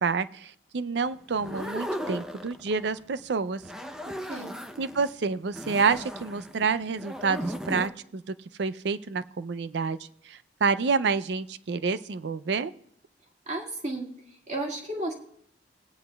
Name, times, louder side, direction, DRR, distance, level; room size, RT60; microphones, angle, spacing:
voice 1, 0.0-3.6 4.8-8.2 8.6-10.0 10.3-12.7, right 5 dB, 65° right, 14 dB, 0.4 m, -28 dB
sound 1, 1.3-3.0 3.5-5.1 5.5-7.9, equal, 5° right, 0.6 m, -36 dB
voice 2, 4.0-4.6 13.5-14.1 14.5-15.1, right 2 dB, 35° right, -1 dB, 2.0 m, -33 dB
18.5 x 9.7 x 2.3 m, 0.69 s
head